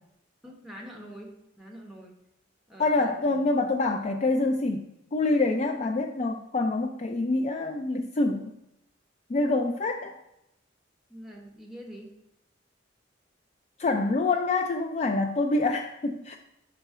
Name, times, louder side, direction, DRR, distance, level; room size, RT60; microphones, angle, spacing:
voice 1, 0.4-2.2 2.7-3.5 11.1-12.1, equal, ahead, -1 dB, 1.0 m, -45 dB
voice 2, 2.8-8.5 9.3-10.1 13.8-16.4, left 2 dB, 35° left, 4 dB, 0.3 m, -26 dB
5.5 x 3.9 x 4.8 m, 0.84 s
head